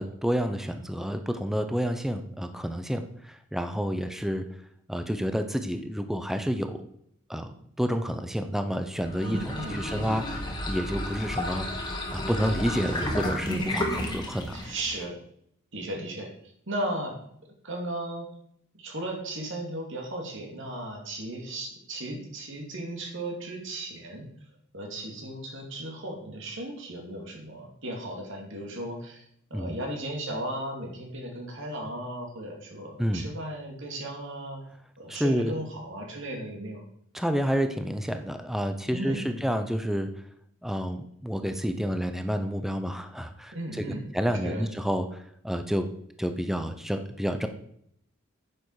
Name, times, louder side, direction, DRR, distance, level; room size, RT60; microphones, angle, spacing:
voice 1, 0.0-4.4 4.9-6.9 7.3-10.4 10.7-11.7 12.1-14.7 29.5-29.8 33.0-33.2 35.1-35.5 37.1-40.1 40.6-43.9 44.1-45.1 45.4-45.9 46.2-47.5, equal, ahead, 7 dB, 0.7 m, -29 dB
sound 1, 9.0-15.0, left 1 dB, 20° left, 1.7 m, -32 dB
voice 2, 9.2-10.1 13.5-14.1 14.5-15.2 15.7-16.3 16.7-17.1 17.6-18.3 18.8-24.3 24.7-29.2 29.5-34.6 35.0-36.8 38.9-39.4 43.5-44.1 44.4-44.6, right 1 dB, 65° right, 0 dB, 2.6 m, -35 dB
9.7 x 7.0 x 4.8 m, 0.69 s
head